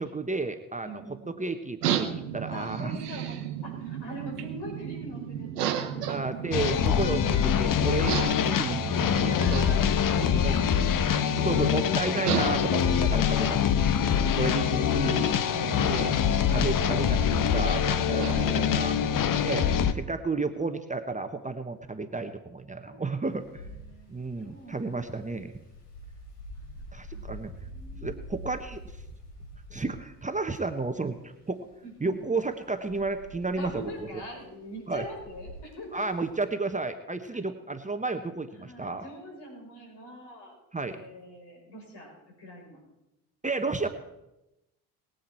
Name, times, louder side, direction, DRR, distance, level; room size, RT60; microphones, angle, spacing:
voice 1, 0.0-0.9 1.3-3.0 6.1-9.7 10.2-10.6 11.4-14.0 14.3-15.3 15.7-16.1 16.5-18.9 19.4-23.6 24.1-25.5 26.9-27.5 28.0-28.8 29.7-31.7 32.0-33.8 34.9-35.0 35.9-39.1 40.7-41.0 43.4-43.9, right 3 dB, 15° right, 7 dB, 1.1 m, -32 dB
voice 2, 0.8-1.5 2.5-6.4 9.4-10.8 18.0-19.0 22.8-23.5 23.8-25.0 27.1-28.4 31.8-32.2 33.5-36.1 37.3-37.4 38.5-42.8, equal, 60° left, 0 dB, 6.2 m, -44 dB
sound 1, 1.8-19.9, right 10 dB, 90° right, 1.0 m, -35 dB
sound 2, 6.5-19.9, left 9 dB, 45° left, 1.0 m, -25 dB
Wind, 23.2-36.3, equal, 90° left, 2.8 m, -46 dB
21.5 x 8.1 x 4.4 m, 0.93 s
hypercardioid pair, 50°, 45 cm